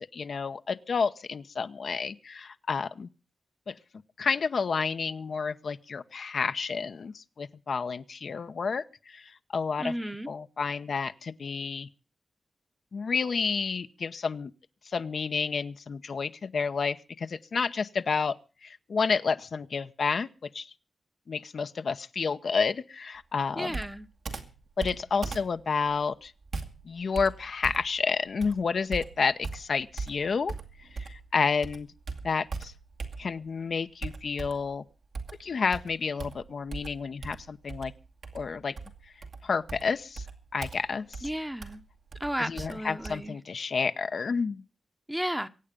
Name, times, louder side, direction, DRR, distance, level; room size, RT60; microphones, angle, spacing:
voice 1, 0.0-3.1 3.7-3.8 4.2-9.9 10.3-11.9 12.9-14.5 14.9-18.4 18.6-20.3 20.5-20.7 21.3-23.8 24.8-26.3 26.8-30.5 31.0-31.9 32.2-32.7 33.2-34.8 35.4-37.9 38.3-38.7 39.4-40.3 40.5-41.3 42.4-44.6, left 5 dB, 70° left, 0.9 m, -30 dB
voice 2, 9.8-10.3 23.6-24.1 41.2-41.8 42.2-43.4 45.1-45.5, equal, 10° right, 0.9 m, -33 dB
Computer keyboard, 23.7-31.3 31.6-33.5 34.0-34.7 35.1-43.1, right 4 dB, 80° right, 2.4 m, -40 dB
23.5 x 8.7 x 5.2 m
cardioid pair, 75°, 0 cm